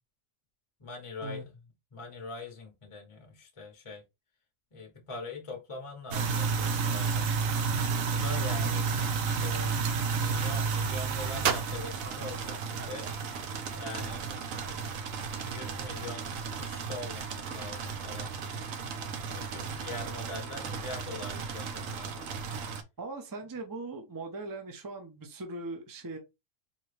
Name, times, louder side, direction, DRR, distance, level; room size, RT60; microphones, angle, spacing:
voice 1, 0.8-1.5 1.9-4.0 4.7-7.3 8.1-9.0 9.4-13.1 13.8-14.9 15.4-18.3 19.3-22.3, left 3 dB, 30° left, 0.8 m, -43 dB
sound 1, 6.1-22.8, right 5 dB, 80° right, 1.1 m, -32 dB
Gunshot gunfire, 9.5-10.0 11.4-12.9, right 8 dB, 60° right, 0.7 m, -34 dB
voice 2, 23.0-26.2, right 2 dB, 20° right, 0.6 m, -40 dB
4.1 x 3.0 x 3.2 m
omnidirectional pair, 1.4 m